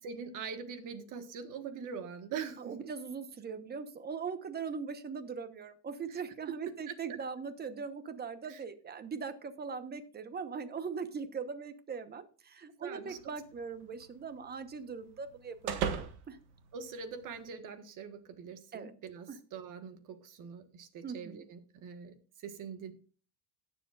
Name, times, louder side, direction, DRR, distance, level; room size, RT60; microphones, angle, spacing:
voice 1, 0.0-2.9 6.1-6.2 6.9-7.2 8.5-8.6 12.8-13.2 16.7-22.9, right 6 dB, 55° right, 8 dB, 1.6 m, -43 dB
voice 2, 2.6-16.4 18.7-18.9 19.3-19.4 21.0-21.4, right 5 dB, 25° right, 11 dB, 1.1 m, -40 dB
sound 1, 13.1-17.5, right 7 dB, 90° right, 1.6 m, -41 dB
18.0 x 7.2 x 2.5 m, 0.38 s
cardioid pair, 135°, 38 cm